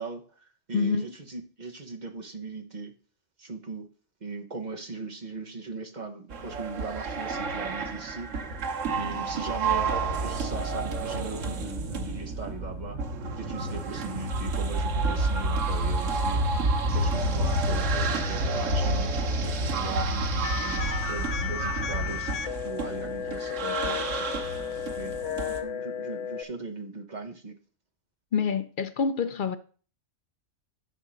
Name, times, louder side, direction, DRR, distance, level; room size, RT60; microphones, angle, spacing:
voice 1, 0.0-2.9 3.4-3.9 4.2-8.3 9.0-9.9 10.2-13.0 13.4-16.4 16.9-22.4 22.6-27.5, right 3 dB, 40° right, 1.2 m, -39 dB
voice 2, 0.7-1.1 28.3-29.6, left 5 dB, 55° left, 0.6 m, -27 dB
sound 1, 6.3-25.6, right 2 dB, 90° right, 1.4 m, -29 dB
sound 2, 20.4-26.4, left 9 dB, 80° left, 0.9 m, -34 dB
10.0 x 3.7 x 6.3 m
omnidirectional pair, 1.3 m